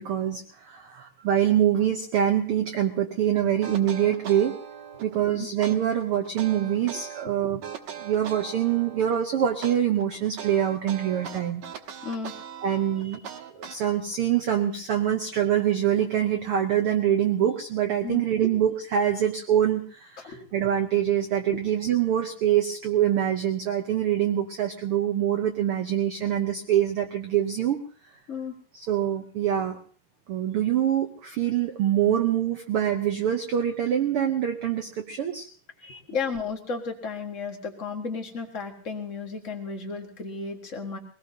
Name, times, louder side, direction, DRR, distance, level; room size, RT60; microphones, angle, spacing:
voice 1, 0.0-4.6 5.0-7.6 8.0-11.6 12.6-27.8 28.7-29.8 30.3-35.5 35.8-36.0, right 10 dB, 85° right, 5 dB, 1.2 m, -25 dB
sound 1, 3.6-5.2 5.6-7.3 7.6-9.2 9.6-14.2, right 8 dB, 65° right, 2.4 m, -39 dB
voice 2, 36.1-41.0, left 4 dB, 40° left, 2 dB, 1.0 m, -33 dB
23.0 x 18.5 x 2.8 m, 0.44 s
omnidirectional pair, 3.8 m